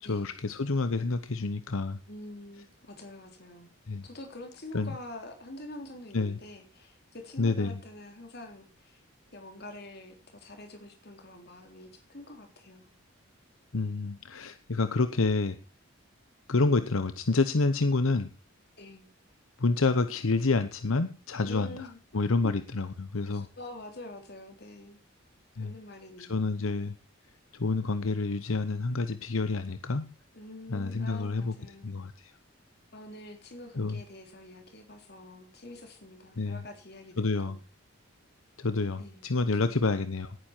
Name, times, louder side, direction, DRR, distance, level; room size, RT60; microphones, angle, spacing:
voice 1, 0.0-2.0 3.9-4.1 4.7-5.0 6.1-6.4 7.4-7.8 13.7-15.6 16.5-18.3 19.6-21.9 22.1-23.5 25.6-25.7 26.2-27.0 27.5-30.1 30.7-31.5 31.8-32.3 33.7-34.0 36.4-36.6 37.2-37.6 38.6-40.3, left 3 dB, 75° left, 11 dB, 0.9 m, -28 dB
voice 2, 2.1-3.7 4.0-9.0 9.3-12.9 18.8-19.1 21.4-22.0 23.3-25.0 25.6-26.4 30.3-31.9 32.9-37.6 39.0-39.2, left 1 dB, 50° left, 5 dB, 3.5 m, -46 dB
18.0 x 9.6 x 4.5 m, 0.31 s
head